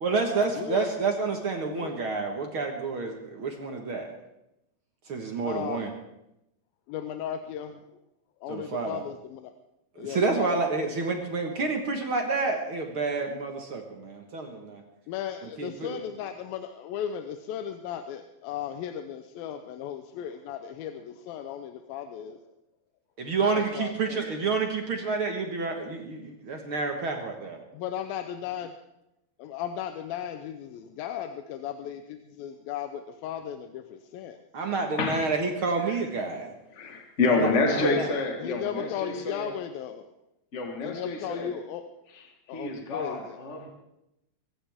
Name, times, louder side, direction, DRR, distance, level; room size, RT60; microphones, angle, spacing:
voice 1, 0.0-4.1 5.1-5.9 8.5-9.0 10.0-14.8 15.6-16.0 23.2-27.6 34.5-36.6 37.3-38.1, right 4 dB, 50° right, 3 dB, 1.8 m, -29 dB
voice 2, 0.5-0.9 1.7-1.9 5.4-5.8 6.9-8.0 8.4-9.5 10.0-10.6 15.1-22.4 23.4-24.2 27.7-28.7 29.4-34.4 37.8-38.0 38.4-40.1 40.8-41.8 42.5-43.4, left 9 dB, 90° left, 7 dB, 2.6 m, -36 dB
voice 3, 36.7-39.5 40.5-41.5 42.1-42.2 42.5-43.7, left 3 dB, 40° left, 2 dB, 1.0 m, -28 dB
24.0 x 15.5 x 3.6 m, 0.87 s
omnidirectional pair, 4.0 m